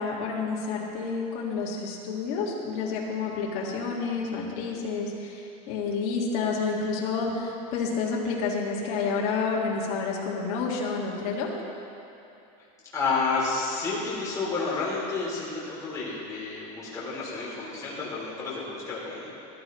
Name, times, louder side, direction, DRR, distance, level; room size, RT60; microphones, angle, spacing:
voice 1, 0.0-11.5, left 4 dB, 60° left, -3 dB, 1.9 m, -29 dB
voice 2, 12.9-19.3, left 4 dB, 15° left, -8 dB, 2.9 m, -30 dB
14.0 x 12.5 x 3.1 m, 2.8 s
supercardioid pair, 150°, 21 cm